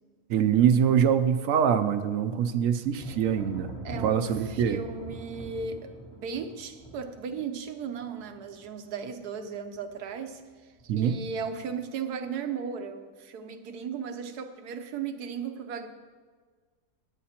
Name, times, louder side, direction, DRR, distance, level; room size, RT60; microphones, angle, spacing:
voice 1, 0.3-3.7 4.0-4.8 10.9-11.2, right 8 dB, 70° right, 10 dB, 0.9 m, -24 dB
Thunder, 3.0-9.4 9.7-10.3 10.8-11.6, equal, 25° left, 1.1 m, -43 dB
voice 2, 3.8-15.9, right 6 dB, 90° right, 8 dB, 1.4 m, -36 dB
17.5 x 10.5 x 2.9 m, 1.5 s
omnidirectional pair, 1.6 m